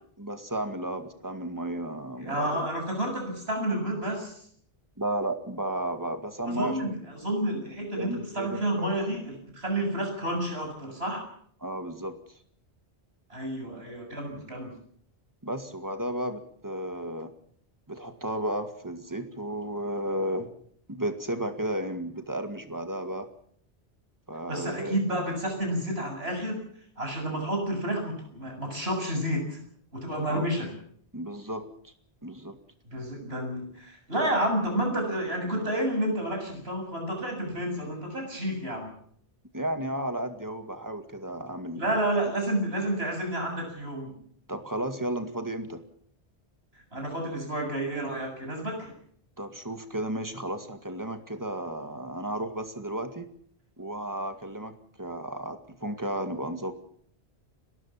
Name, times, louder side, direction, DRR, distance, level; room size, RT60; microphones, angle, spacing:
voice 1, 0.2-2.7 5.0-6.9 8.0-8.9 11.6-12.2 15.4-17.3 17.9-20.5 20.9-23.3 24.3-25.0 30.3-30.5 31.1-31.9 32.2-32.6 39.5-41.9 42.2-42.3 44.5-45.8 49.4-53.3 53.8-56.7, right 1 dB, 15° right, 8 dB, 2.1 m, -33 dB
voice 2, 2.2-4.4 6.4-6.9 7.2-11.3 13.3-14.7 24.5-26.6 27.0-29.6 29.9-30.7 32.9-38.9 41.7-44.1 46.9-48.9, right 1 dB, 70° right, 2 dB, 7.7 m, -30 dB
30.0 x 13.0 x 7.3 m, 0.63 s
omnidirectional pair, 1.1 m